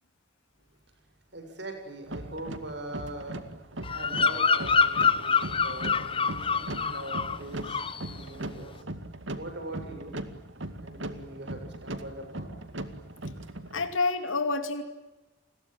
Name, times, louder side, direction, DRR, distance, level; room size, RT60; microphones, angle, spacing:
voice 1, 1.3-3.7 3.9-8.8 9.3-10.1 10.8-12.5, right 1 dB, 60° right, 5 dB, 7.3 m, -42 dB
sound 1, 2.1-13.9, right 1 dB, 75° right, 2.2 m, -39 dB
Bird vocalization bird call bird song, 3.8-7.4 7.6-8.1, left 5 dB, 25° left, 1.0 m, -26 dB
voice 2, 13.7-14.8, left 3 dB, 85° left, 8 dB, 2.6 m, -28 dB
29.5 x 21.5 x 8.8 m, 1.1 s
head